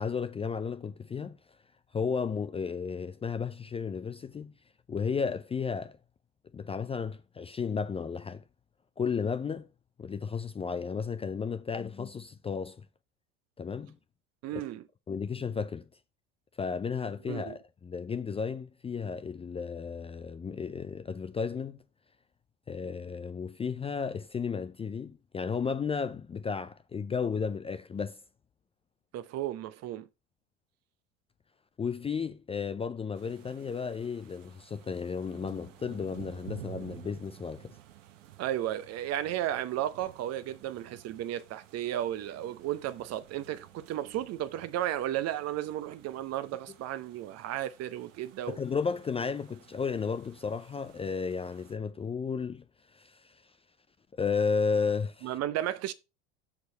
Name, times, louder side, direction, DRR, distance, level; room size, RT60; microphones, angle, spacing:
voice 1, 0.0-1.4 1.9-4.5 4.9-6.0 6.5-8.4 9.0-9.7 10.0-12.8 13.6-14.0 15.1-15.8 16.6-21.8 22.7-28.2 31.8-37.7 48.5-52.6 52.9-53.4 54.2-55.3, left 5 dB, 15° left, 0.5 m, -33 dB
voice 2, 14.4-14.8 17.3-17.6 29.1-30.1 38.4-48.6 55.2-55.9, right 12 dB, 40° right, 0.8 m, -34 dB
sound 1, 33.1-51.7, right 13 dB, 70° right, 1.1 m, -53 dB
6.4 x 4.8 x 6.1 m
hypercardioid pair, 80°, 38 cm